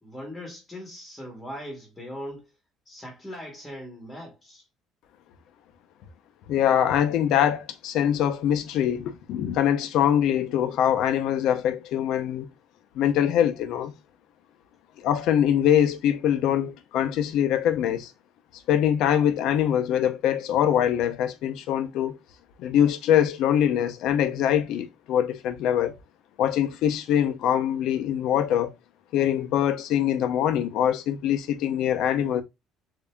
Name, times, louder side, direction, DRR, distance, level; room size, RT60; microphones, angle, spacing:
voice 1, 0.0-2.5 2.8-4.6, equal, 5° left, 1.2 m, -40 dB
voice 2, 6.5-12.5 12.9-13.9 15.0-18.1 18.7-22.2 22.6-26.0 26.4-28.7 29.1-32.4, left 10 dB, 60° left, 0.7 m, -23 dB
7.1 x 2.7 x 2.2 m
cardioid pair, 165°, 0 cm